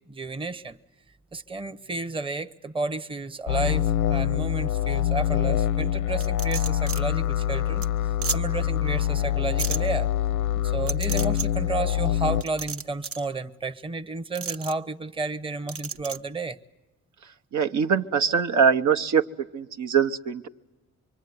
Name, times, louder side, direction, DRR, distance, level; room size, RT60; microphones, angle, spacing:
voice 1, 0.1-0.8 1.3-10.1 10.6-16.6, right 3 dB, 15° right, 1.0 m, -32 dB
sound 1, 3.5-12.4, left 12 dB, 85° left, 0.9 m, -25 dB
sound 2, 6.2-7.0 7.4-7.5 7.8-7.9 8.2-8.4 9.6-9.8 10.9-11.5 12.4-13.2 14.3-14.7 15.7-16.2, right 6 dB, 50° right, 1.2 m, -32 dB
voice 2, 17.5-19.2 19.5-20.5, right 6 dB, 70° right, 1.1 m, -22 dB
25.0 x 24.5 x 9.7 m
cardioid pair, 90°, 30 cm